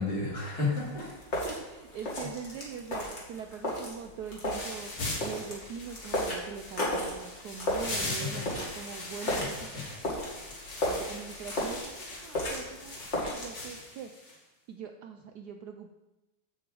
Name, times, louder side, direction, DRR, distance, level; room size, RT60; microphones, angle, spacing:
voice 1, 0.0-1.1 7.9-8.5 9.2-9.5 9.7-9.8 13.1-13.3, left 3 dB, 50° left, -5 dB, 3.4 m, -33 dB
sound 1, 0.7-13.5, left 1 dB, 35° left, 2.4 m, -35 dB
voice 2, 1.0-9.5 10.8-14.1 14.7-15.9, right 7 dB, 70° right, 6 dB, 1.0 m, -42 dB
sound 2, 4.5-14.4, left 2 dB, 85° left, 3.1 m, -40 dB
7.2 x 6.0 x 7.7 m, 1.1 s
omnidirectional pair, 2.2 m